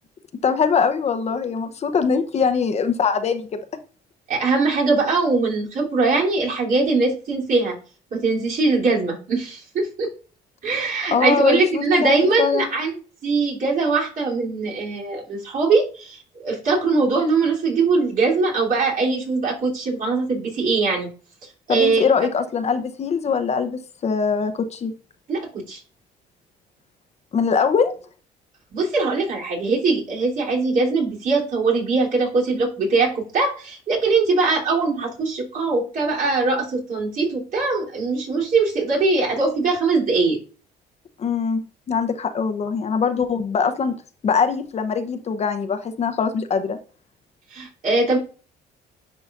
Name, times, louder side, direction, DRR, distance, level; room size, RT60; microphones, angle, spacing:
voice 1, 0.4-3.6 11.1-12.7 21.7-24.9 27.3-27.9 41.2-41.6 41.9-44.0 44.2-46.8, left 6 dB, 40° left, 0.8 m, -22 dB
voice 2, 4.3-7.8 8.1-10.1 10.6-13.0 13.2-21.1 21.7-22.1 25.3-25.8 28.7-40.4 47.5-48.2, right 3 dB, 55° right, 3.2 m, -21 dB
10.5 x 4.8 x 2.5 m
cardioid pair, 110°, 17 cm